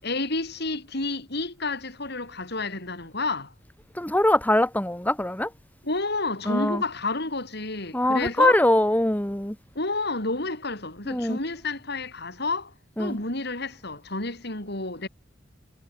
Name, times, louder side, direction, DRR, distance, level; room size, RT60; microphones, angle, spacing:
voice 1, 0.0-3.5 5.8-8.6 9.8-12.7 13.0-15.1, left 3 dB, 60° left, 7.6 m, -30 dB
voice 2, 3.9-5.5 6.5-6.8 7.9-9.6 11.1-11.4 13.0-13.2, left 1 dB, 10° left, 2.3 m, -22 dB
head